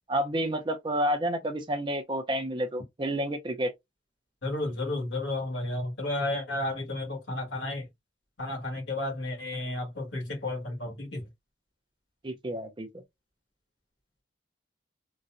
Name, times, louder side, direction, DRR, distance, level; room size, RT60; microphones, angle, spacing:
voice 1, 0.1-3.7 12.2-12.9, equal, 25° right, 0.5 m, -30 dB
voice 2, 4.4-7.8 8.4-11.2, left 2 dB, 75° left, 1.6 m, -32 dB
4.0 x 2.1 x 2.4 m
head